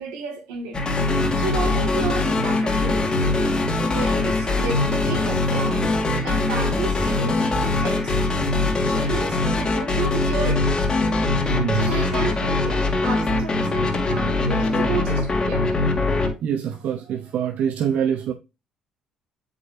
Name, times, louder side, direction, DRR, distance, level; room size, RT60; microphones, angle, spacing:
voice 1, 0.0-3.6 3.9-6.0 6.2-8.2 8.9-10.7 11.7-15.7, right 5 dB, 80° right, 1.9 m, -32 dB
sound 1, 0.7-16.3, left 2 dB, 30° left, 2.1 m, -22 dB
voice 2, 11.4-12.1 16.4-18.3, right 8 dB, 60° right, 0.7 m, -25 dB
7.8 x 5.2 x 2.5 m
hypercardioid pair, 60°, 3 cm